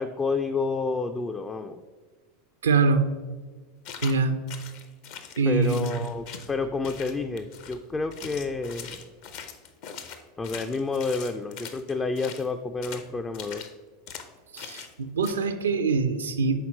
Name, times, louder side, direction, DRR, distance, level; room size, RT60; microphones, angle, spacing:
voice 1, 0.0-1.8 5.4-9.0 10.4-13.6, left 4 dB, 20° left, 7 dB, 0.3 m, -29 dB
voice 2, 2.6-3.2 4.0-4.5 5.4-6.0 14.5-16.7, right 4 dB, 75° right, 9 dB, 0.4 m, -24 dB
sound 1, 3.8-4.2 4.5-6.5 6.8-7.8 8.1-12.5 12.8-13.1 13.3-13.7 14.1-14.3 14.6-14.9 15.2-15.3, left 7 dB, 55° left, 0.6 m, -41 dB
5.8 x 4.1 x 4.2 m, 1.4 s
figure-of-eight pair, 85°, 0 cm